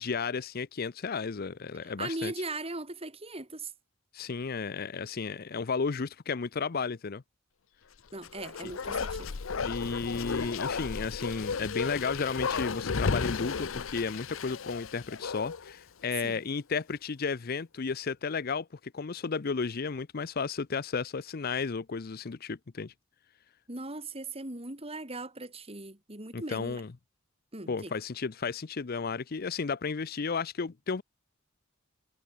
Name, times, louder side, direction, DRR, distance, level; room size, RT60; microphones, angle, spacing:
voice 1, 0.0-2.3 4.1-7.2 8.6-8.7 9.6-22.9 26.3-26.9 27.7-31.0, left 5 dB, 50° left, 0.6 m, -33 dB
voice 2, 1.8-3.7 8.1-9.3 16.2-16.4 23.7-26.8 27.5-27.9, right 2 dB, 30° right, 4.0 m, -39 dB
Bark, 8.2-15.7 16.1-16.2, left 5 dB, 90° left, 0.7 m, -34 dB
head